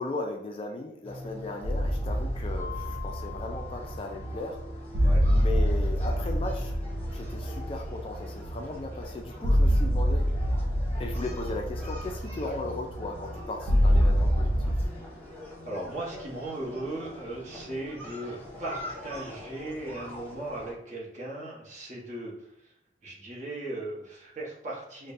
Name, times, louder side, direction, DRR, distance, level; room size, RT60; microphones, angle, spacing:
voice 1, 0.0-4.6 5.3-6.8 7.1-10.6 11.0-14.5, left 2 dB, 30° left, 2 dB, 0.3 m, -37 dB
sound 1, 1.0-20.7, left 1 dB, 10° left, 1.0 m, -45 dB
sound 2, 1.6-14.9, equal, 60° right, 0.5 m, -26 dB
Mallet percussion, 2.6-5.2, left 10 dB, 80° right, 0.8 m, -45 dB
voice 2, 15.6-22.3 22.6-22.7 23.0-25.1, right 1 dB, 40° right, -4 dB, 1.1 m, -37 dB
5.2 x 2.2 x 2.6 m, 0.81 s
head